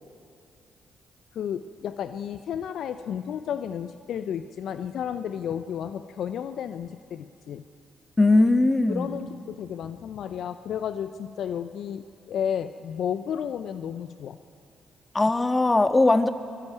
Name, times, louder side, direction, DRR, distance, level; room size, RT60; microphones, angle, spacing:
voice 1, 1.3-7.6 8.9-14.4, left 8 dB, 65° left, 11 dB, 0.7 m, -32 dB
voice 2, 8.2-9.1 15.1-16.3, left 2 dB, 25° left, 8 dB, 1.7 m, -19 dB
24.5 x 20.0 x 9.4 m, 2.5 s
hypercardioid pair, 45°, 0 cm